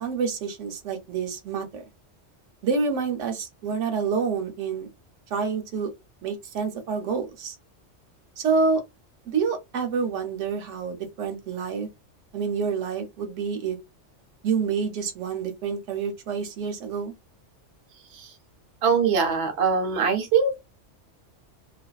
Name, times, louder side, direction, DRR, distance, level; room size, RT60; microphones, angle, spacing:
voice 1, 0.0-1.8 2.6-4.9 5.3-5.9 6.2-7.6 8.4-8.8 9.3-11.9 12.3-13.8 14.4-17.1, right 5 dB, 85° right, 1.0 m, -28 dB
voice 2, 18.8-20.6, right 5 dB, 65° right, 0.8 m, -22 dB
2.4 x 2.2 x 2.3 m
omnidirectional pair, 1.2 m